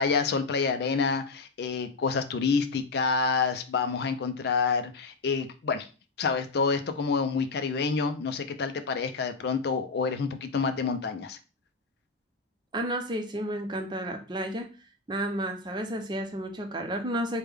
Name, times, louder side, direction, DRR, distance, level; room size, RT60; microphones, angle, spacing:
voice 1, 0.0-5.9 6.2-11.4, left 5 dB, 65° left, 9 dB, 0.4 m, -28 dB
voice 2, 12.7-14.7 15.1-17.4, right 1 dB, 25° right, 4 dB, 0.5 m, -31 dB
3.4 x 2.2 x 3.3 m, 0.33 s
head